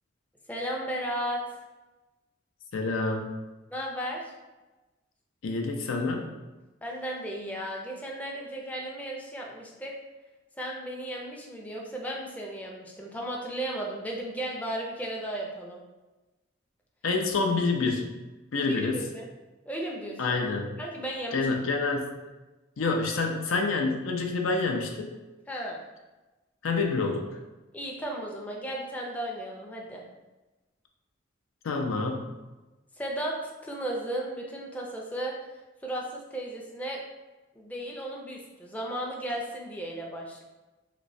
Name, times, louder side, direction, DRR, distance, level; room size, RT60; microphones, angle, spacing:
voice 1, 0.5-1.4 3.7-4.3 6.8-9.9 10.6-15.8 18.6-19.3 19.7-20.4 20.8-21.5 25.5-25.8 27.7-30.0 33.0-35.3 35.8-37.0 37.6-40.4, right 1 dB, 10° left, -2 dB, 0.4 m, -35 dB
voice 2, 2.7-3.3 5.4-6.2 17.0-18.1 18.5-19.1 20.2-20.7 21.3-22.2 22.8-25.1 26.6-27.3 31.6-32.3, left 3 dB, 85° left, 3 dB, 0.5 m, -27 dB
3.1 x 3.0 x 2.6 m, 1.1 s
head